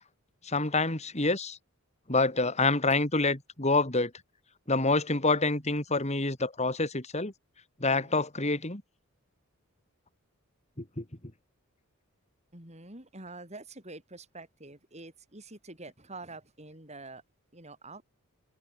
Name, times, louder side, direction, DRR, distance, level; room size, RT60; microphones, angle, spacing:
voice 1, 0.4-1.6 2.1-4.1 4.7-7.3 7.8-8.8 11.0-11.1, left 3 dB, 30° left, 2.8 m, -27 dB
voice 2, 7.8-8.2 12.5-17.2 17.5-18.0, right 2 dB, 30° right, 6.8 m, -47 dB
head